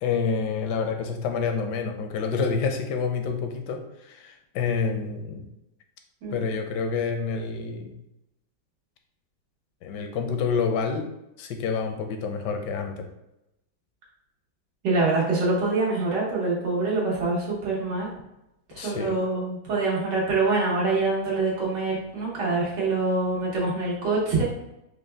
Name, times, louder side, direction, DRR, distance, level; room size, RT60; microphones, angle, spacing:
voice 1, 0.0-5.5 6.3-8.0 9.8-11.1 11.4-13.1 18.8-19.2, left 5 dB, 80° left, 5 dB, 1.2 m, -28 dB
voice 2, 14.8-18.1 18.7-24.4, right 3 dB, 80° right, -5 dB, 1.9 m, -25 dB
5.0 x 2.2 x 3.3 m, 0.89 s
omnidirectional pair, 1.8 m